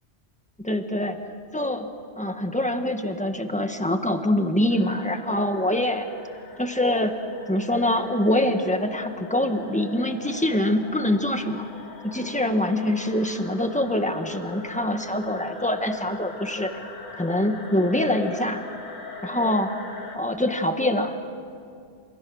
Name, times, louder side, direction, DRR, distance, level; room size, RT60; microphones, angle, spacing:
voice 1, 0.6-1.2 1.5-1.9 2.2-6.1 6.6-7.2 7.5-11.7 12.0-16.7 17.2-18.6 19.2-19.8 20.1-21.2, left 1 dB, 5° left, 6 dB, 1.4 m, -24 dB
sound 1, 4.7-20.2, left 3 dB, 50° left, 2.7 m, -41 dB
29.5 x 27.5 x 6.3 m, 2.3 s
omnidirectional pair, 1.1 m